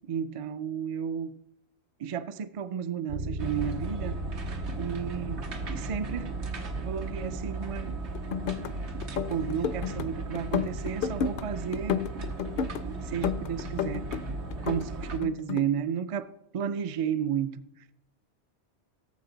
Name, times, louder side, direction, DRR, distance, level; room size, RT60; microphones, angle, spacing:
voice 1, 0.1-1.4 2.0-4.2 4.5-6.3 6.8-7.9 9.1-12.1 12.5-12.6 12.8-14.1 14.6-17.8, right 8 dB, 50° right, 0.4 m, -33 dB
Bass guitar, 3.1-12.9, right 3 dB, 75° right, 1.4 m, -40 dB
sound 1, 3.4-15.2, right 2 dB, 90° right, 1.4 m, -36 dB
sound 2, 8.1-8.7 9.0-10.1 10.3-11.5 11.7-12.8 13.2-14.2 14.5-15.6, left 8 dB, 60° left, 0.6 m, -31 dB
17.5 x 7.2 x 3.9 m
omnidirectional pair, 1.1 m